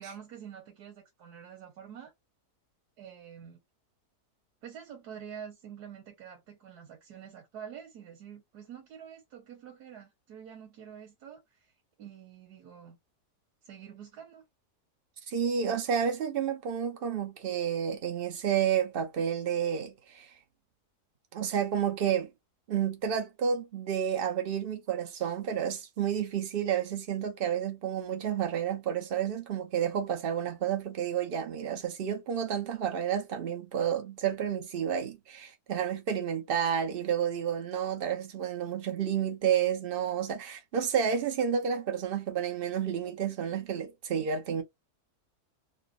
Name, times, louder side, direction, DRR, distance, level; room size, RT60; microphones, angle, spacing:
voice 1, 0.0-2.1 3.0-3.6 4.6-11.7 12.0-13.0 13.6-14.4, right 8 dB, 90° right, 1.5 m, -47 dB
voice 2, 15.3-20.3 21.3-22.3 22.7-44.6, right 8 dB, 45° right, 0.8 m, -30 dB
3.9 x 2.2 x 2.5 m
omnidirectional pair, 1.7 m